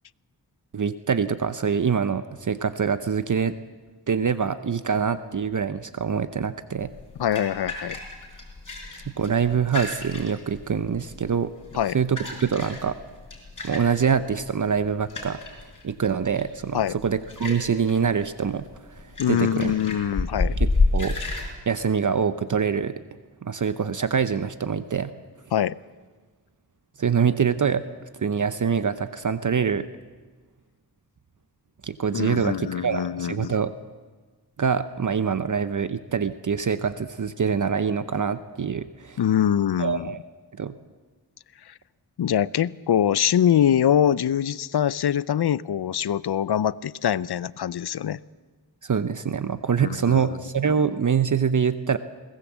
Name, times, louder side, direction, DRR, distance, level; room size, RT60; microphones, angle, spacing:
voice 1, 0.7-3.6 4.1-6.9 9.1-11.5 11.9-12.9 13.6-19.7 20.6-21.2 21.7-23.0 23.4-25.1 27.0-27.9 28.2-29.9 31.8-33.7 34.6-39.2 39.8-40.2 40.5-40.7 48.8-52.0, right 6 dB, 50° right, 12 dB, 0.8 m, -25 dB
sound 1, 6.8-21.5, left 3 dB, 50° left, 5.0 m, -31 dB
voice 2, 7.2-8.0 8.8-9.0 11.8-12.0 16.7-17.0 19.2-20.6 25.5-25.8 32.1-33.5 39.2-40.1 42.2-48.2 49.8-50.4, left 9 dB, 70° left, 19 dB, 0.6 m, -23 dB
21.5 x 19.0 x 7.4 m, 1.4 s
wide cardioid pair, 90°, 40 cm